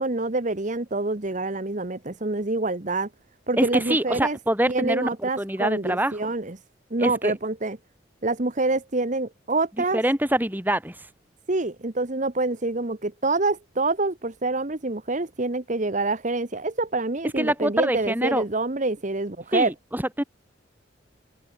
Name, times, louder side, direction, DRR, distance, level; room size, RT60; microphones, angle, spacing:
voice 1, 0.0-3.1 3.5-4.4 4.7-6.6 6.9-7.8 8.2-10.0 11.5-19.7, right 2 dB, 40° right, 1.2 m, -26 dB
voice 2, 3.6-6.2 7.0-7.3 9.9-11.1 17.4-18.4 19.5-20.2, right 1 dB, 10° right, 2.8 m, -25 dB
head